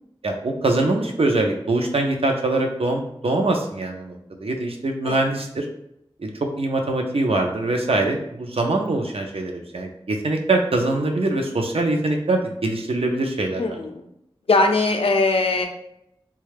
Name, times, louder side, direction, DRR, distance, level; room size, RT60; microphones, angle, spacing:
voice 1, 0.2-5.7 6.2-6.3 6.6-13.8, right 2 dB, 75° right, 3 dB, 0.5 m, -23 dB
voice 2, 13.6-14.1 14.5-15.7, left 3 dB, 70° left, 4 dB, 0.4 m, -20 dB
3.1 x 2.3 x 3.3 m, 0.77 s
wide cardioid pair, 60°, 10 cm